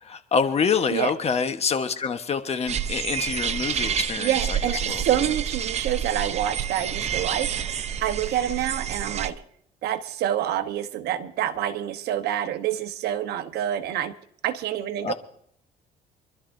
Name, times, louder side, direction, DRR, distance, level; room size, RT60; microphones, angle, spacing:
voice 1, 0.0-5.0 15.0-15.1, left 6 dB, 40° left, 8 dB, 1.2 m, -26 dB
sound 1, 2.7-9.3, right 8 dB, 40° right, 0.7 m, -29 dB
voice 2, 4.2-7.7 8.0-9.4 9.8-14.1 14.4-15.1, right 11 dB, 75° right, 9 dB, 1.1 m, -27 dB
26.0 x 12.5 x 2.7 m, 0.66 s
cardioid pair, 110°, 17 cm